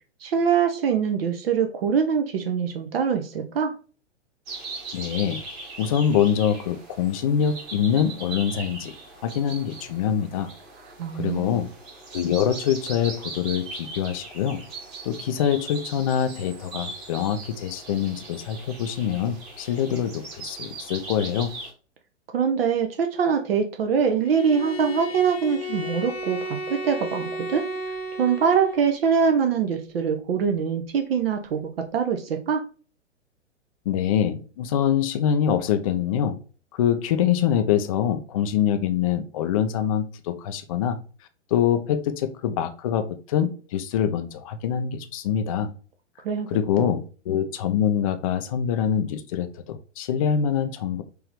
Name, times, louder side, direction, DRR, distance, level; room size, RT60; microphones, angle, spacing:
voice 1, 0.2-3.7 11.0-11.6 22.3-27.6 28.2-32.6 46.2-46.5 46.8-46.9, right 6 dB, 55° right, 5 dB, 0.7 m, -23 dB
sound 1, 4.5-21.7, right 3 dB, 30° right, 1.6 m, -40 dB
voice 2, 4.9-5.4 5.8-8.9 9.2-10.5 11.1-11.7 12.1-14.6 15.0-21.5 33.9-36.4 36.7-41.0 41.5-45.7 46.5-51.0, left 9 dB, 30° left, 8 dB, 0.4 m, -24 dB
Bowed string instrument, 24.2-29.0, left 1 dB, 55° left, 0.9 m, -34 dB
4.5 x 2.7 x 3.3 m, 0.37 s
figure-of-eight pair, 115°, 36 cm